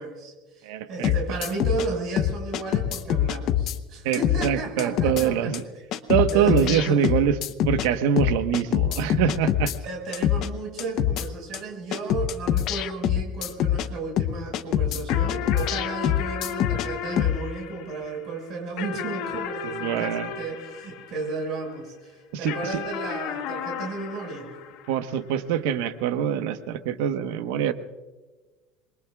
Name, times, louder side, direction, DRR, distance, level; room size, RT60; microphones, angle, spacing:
voice 1, 0.0-5.5 6.3-7.3 9.8-24.6, right 4 dB, 40° right, 1 dB, 5.3 m, -34 dB
voice 2, 0.6-1.1 4.0-5.6 6.1-7.4 7.6-9.7 19.8-20.3 22.3-22.8 24.9-27.7, right 9 dB, 80° right, 9 dB, 1.1 m, -24 dB
sound 1, 1.0-1.9 2.2-3.8 4.1-4.5 4.8-5.2 5.5-5.6 5.9-7.9 8.2-9.8 10.1-10.5 10.8-11.2 11.5-11.6 11.9-13.9 14.2-16.9 17.2-17.4, left 11 dB, 40° left, 0.8 m, -24 dB
sound 2, 15.1-21.8 22.5-25.3, left 8 dB, 60° left, 2.0 m, -35 dB
27.0 x 22.0 x 2.4 m, 1.2 s
cardioid pair, 170°, 0 cm